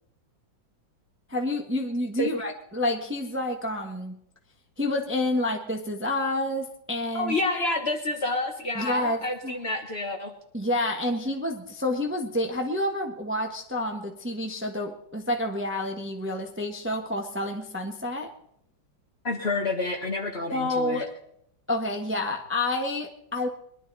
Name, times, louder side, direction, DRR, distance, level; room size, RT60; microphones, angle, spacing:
voice 1, 1.3-4.2 4.8-7.4 8.7-9.6 10.5-18.3 20.5-21.1 21.7-23.5, left 1 dB, 5° right, 3 dB, 1.1 m, -29 dB
voice 2, 7.1-10.3 19.2-21.0, left 2 dB, 35° left, 3 dB, 1.6 m, -28 dB
22.0 x 11.5 x 4.1 m, 0.72 s
omnidirectional pair, 2.1 m